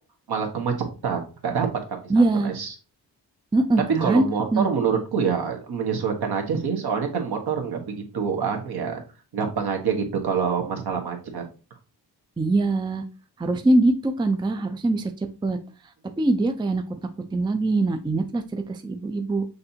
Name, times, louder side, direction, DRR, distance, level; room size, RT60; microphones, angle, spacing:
voice 1, 0.3-0.7 1.0-2.7 4.0-9.0 9.3-11.4, right 6 dB, 65° right, 2 dB, 1.3 m, -26 dB
voice 2, 2.1-2.5 3.5-4.2 4.5-4.7 12.4-13.0 13.4-15.6 16.2-16.8 17.3-19.5, right 2 dB, 10° right, 6 dB, 0.5 m, -22 dB
6.5 x 2.7 x 2.8 m, 0.34 s
cardioid pair, 75°, 41 cm